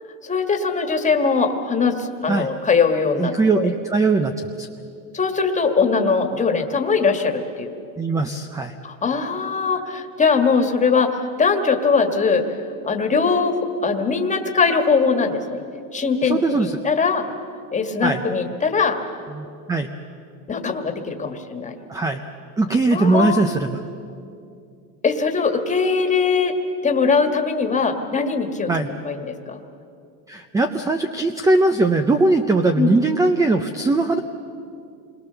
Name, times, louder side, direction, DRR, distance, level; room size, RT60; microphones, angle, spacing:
voice 1, 0.2-3.7 5.1-7.8 8.8-12.4 12.8-15.6 15.9-17.2 17.7-19.0 20.5-21.8 22.9-23.4 25.0-26.5 26.8-28.7 29.0-29.6 32.8-32.9, left 5 dB, 15° left, 5 dB, 1.7 m, -21 dB
voice 2, 3.2-4.3 4.6-4.7 8.0-8.7 16.2-16.8 18.0-18.2 19.3-19.9 21.9-22.2 22.6-23.8 28.7-28.9 30.3-34.2, right 3 dB, 5° right, 7 dB, 0.5 m, -20 dB
28.0 x 22.5 x 6.9 m, 2.5 s
supercardioid pair, 145°, 47 cm